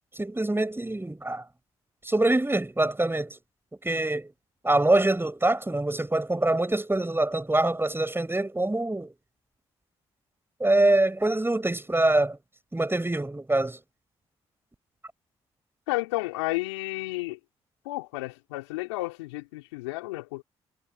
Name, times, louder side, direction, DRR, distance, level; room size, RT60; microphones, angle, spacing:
voice 1, 0.1-1.4 2.0-3.4 3.8-4.3 4.6-9.1 10.6-12.4 12.7-13.8, right 2 dB, 15° right, 7.2 m, -24 dB
voice 2, 15.9-17.4 17.8-20.4, left 21 dB, 85° left, 4.4 m, -32 dB
hypercardioid pair, 40°, 14 cm